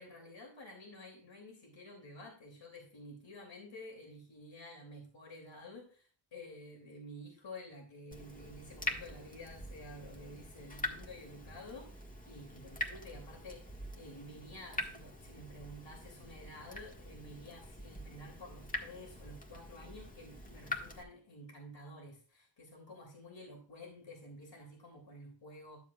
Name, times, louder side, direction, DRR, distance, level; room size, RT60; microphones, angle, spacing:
voice 1, 0.0-25.8, left 1 dB, 75° left, 0 dB, 2.8 m, -51 dB
Water tap faucet / Drip, 8.1-21.0, left 1 dB, 20° left, 1.6 m, -44 dB
12.0 x 7.3 x 2.4 m, 0.41 s
cardioid pair, 60°, 45 cm